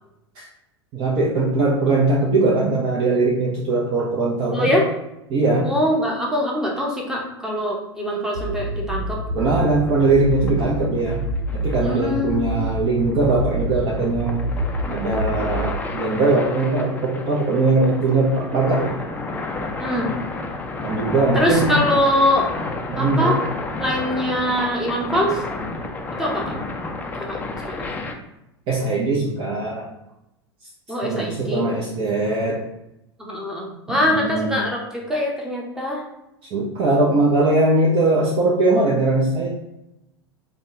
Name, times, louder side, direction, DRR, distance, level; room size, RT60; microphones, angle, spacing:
voice 1, 0.9-4.7 5.3-5.7 9.3-11.2 11.5-14.5 14.9-18.9 20.8-21.7 22.9-23.3 28.7-29.9 31.0-32.6 33.9-34.6 36.5-39.5, right 2 dB, 40° right, -4 dB, 0.9 m, -20 dB
voice 2, 4.5-4.9 5.6-9.2 11.8-12.7 19.8-20.1 21.3-22.5 23.0-23.4 23.8-25.4 26.2-26.5 27.2-27.4 27.6-27.9 30.9-31.6 33.2-36.0, left 1 dB, 5° right, -2 dB, 1.0 m, -23 dB
sound 1, 8.3-15.7, equal, 80° right, 0.8 m, -27 dB
sound 2, 9.8-28.2, left 3 dB, 10° left, 0.6 m, -31 dB
5.3 x 2.4 x 3.8 m, 0.87 s
figure-of-eight pair, 85°, 14 cm